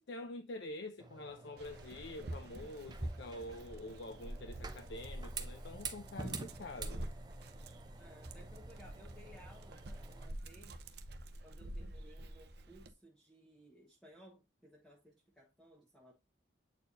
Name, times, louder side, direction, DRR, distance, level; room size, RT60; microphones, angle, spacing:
voice 1, 0.0-7.1, left 2 dB, 65° left, 0.6 m, -47 dB
sound 1, 1.0-10.3, right 3 dB, 20° right, 0.7 m, -48 dB
Dog, 1.6-12.9, right 1 dB, 55° right, 0.7 m, -48 dB
voice 2, 8.0-11.0 11.4-16.1, equal, 5° left, 1.2 m, -60 dB
8.2 x 4.4 x 2.6 m
head